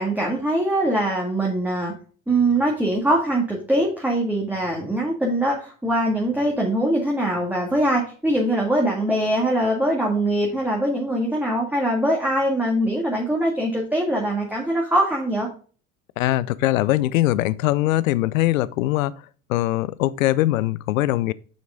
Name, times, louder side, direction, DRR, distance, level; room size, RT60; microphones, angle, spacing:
voice 1, 0.0-1.9 2.3-15.5, right 1 dB, 5° right, 1.8 m, -22 dB
voice 2, 16.2-19.1 19.5-21.3, left 15 dB, 80° left, 0.5 m, -21 dB
6.4 x 6.1 x 3.6 m
hypercardioid pair, 70°, 40 cm